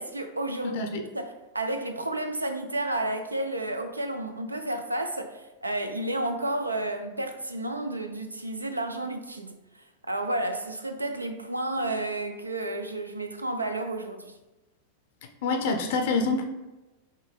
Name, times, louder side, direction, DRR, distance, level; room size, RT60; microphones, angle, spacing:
voice 1, 0.0-9.6 10.1-14.3, right 1 dB, 80° right, 0.4 m, -31 dB
voice 2, 0.7-1.0 15.4-16.4, left 3 dB, 55° left, 0.5 m, -26 dB
5.2 x 2.5 x 3.4 m
figure-of-eight pair, 90°, 0 cm